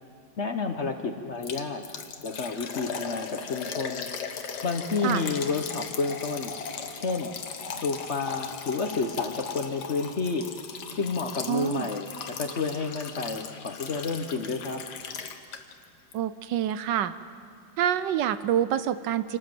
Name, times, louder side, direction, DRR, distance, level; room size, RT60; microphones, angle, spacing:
voice 1, 0.4-1.8 2.2-4.1 4.6-6.5 6.9-7.3 7.8-10.5 10.9-12.1 12.4-14.8, left 4 dB, 45° left, 6 dB, 1.0 m, -30 dB
Liquid, 1.4-15.8 16.1-16.2 16.7-16.8, left 6 dB, 65° left, 1.6 m, -38 dB
voice 2, 11.5-11.9 16.1-17.1 17.8-19.4, right 10 dB, 75° right, 13 dB, 1.3 m, -26 dB
27.5 x 13.0 x 7.7 m, 2.3 s
omnidirectional pair, 2.0 m